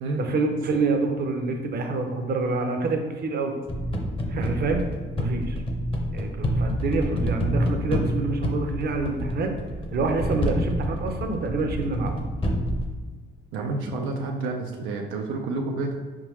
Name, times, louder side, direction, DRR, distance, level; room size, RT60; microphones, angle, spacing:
voice 1, 0.2-3.5 4.3-4.8 5.2-5.6 6.1-9.5 9.9-12.2, right 3 dB, 50° right, 4 dB, 0.7 m, -27 dB
sound 1, 3.7-12.9, equal, 25° left, 0.8 m, -28 dB
voice 2, 13.5-16.0, right 3 dB, 90° right, 1 dB, 0.5 m, -29 dB
4.6 x 3.7 x 3.1 m, 1.4 s
cardioid pair, 90°, 20 cm